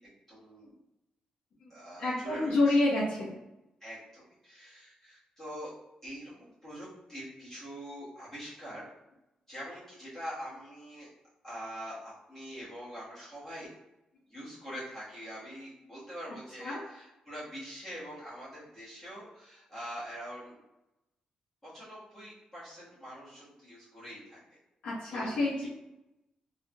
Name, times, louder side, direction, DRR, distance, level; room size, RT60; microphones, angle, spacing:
voice 1, 0.3-0.7 1.7-2.8 3.8-5.7 6.0-8.9 9.5-11.1 11.4-13.7 14.3-20.6 21.6-24.6 25.1-25.7, equal, 15° left, -11 dB, 1.4 m, -44 dB
voice 2, 2.0-3.4 16.6-16.8 24.8-25.7, left 2 dB, 65° left, -9 dB, 0.9 m, -28 dB
3.4 x 2.8 x 2.2 m, 0.93 s
wide cardioid pair, 175°, 2 cm